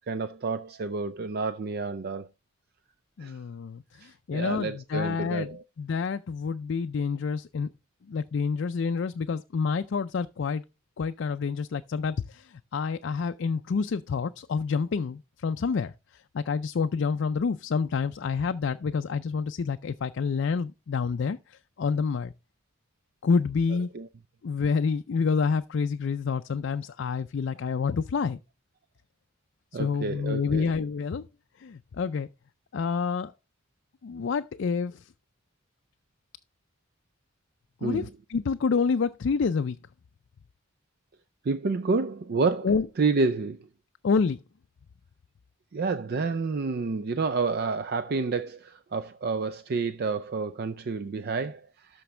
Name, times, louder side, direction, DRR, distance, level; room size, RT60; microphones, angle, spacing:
voice 1, 0.1-2.3 3.2-3.4 4.0-5.6 23.9-24.1 29.7-30.7 37.8-38.1 41.4-42.7 43.0-43.6 45.7-52.0, right 4 dB, 50° right, 0.4 m, -29 dB
voice 2, 3.2-7.7 8.1-10.6 11.0-22.3 23.2-23.9 24.4-28.4 29.7-31.3 31.6-32.3 32.7-33.3 34.0-35.0 37.8-39.8 42.6-42.9 44.0-44.4, left 5 dB, 55° left, 0.4 m, -28 dB
13.0 x 5.2 x 3.2 m
head